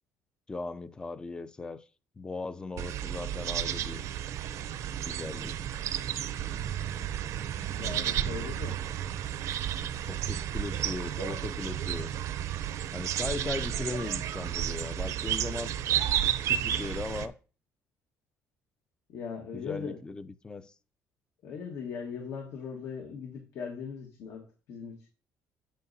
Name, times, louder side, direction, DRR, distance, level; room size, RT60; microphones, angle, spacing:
voice 1, 0.5-1.8 2.2-4.0 5.1-5.6 10.1-12.1 12.9-15.7 16.4-17.3 19.5-20.7, left 3 dB, 15° left, 0.4 m, -38 dB
sound 1, 2.8-17.3, right 10 dB, 60° right, 0.6 m, -32 dB
voice 2, 7.8-8.8 19.1-20.0 21.4-25.1, left 6 dB, 60° left, 1.4 m, -39 dB
8.3 x 7.3 x 2.7 m
cardioid pair, 140°, 6 cm